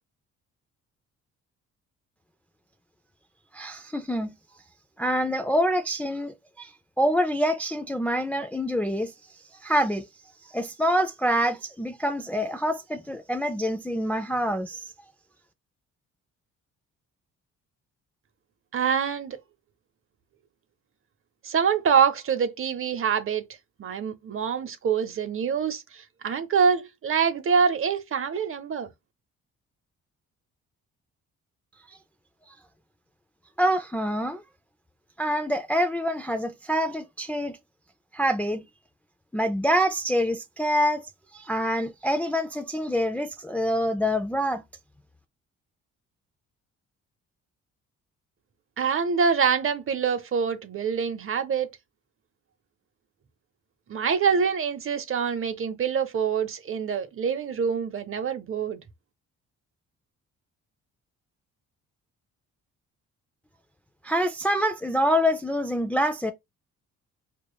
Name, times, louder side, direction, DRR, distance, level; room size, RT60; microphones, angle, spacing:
voice 1, 3.5-4.3 5.0-6.7 7.0-9.1 9.6-10.1 10.5-14.8 33.6-34.4 35.2-37.6 38.1-38.6 39.3-41.0 41.3-44.6 64.0-66.3, equal, 5° left, 0.4 m, -26 dB
voice 2, 18.7-19.4 21.4-23.4 23.8-28.9 48.8-51.7 53.9-58.8, right 6 dB, 45° right, 0.8 m, -25 dB
4.9 x 2.4 x 2.2 m
cardioid pair, 90°, 30 cm